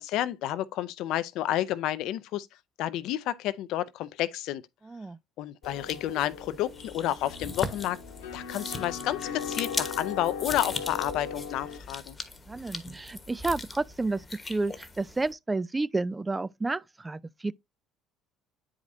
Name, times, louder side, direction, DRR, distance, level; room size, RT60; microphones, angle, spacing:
voice 1, 0.0-2.5 2.8-4.6 5.4-8.0 8.3-12.2, left 13 dB, 70° left, 0.5 m, -30 dB
voice 2, 4.8-5.2 12.5-17.5, right 3 dB, 20° right, 0.4 m, -31 dB
sound 1, 5.6-11.8, left 6 dB, 85° left, 1.2 m, -39 dB
sound 2, 5.6-15.3, left 3 dB, 25° left, 1.2 m, -39 dB
9.3 x 4.9 x 2.6 m
hypercardioid pair, 70°, 0 cm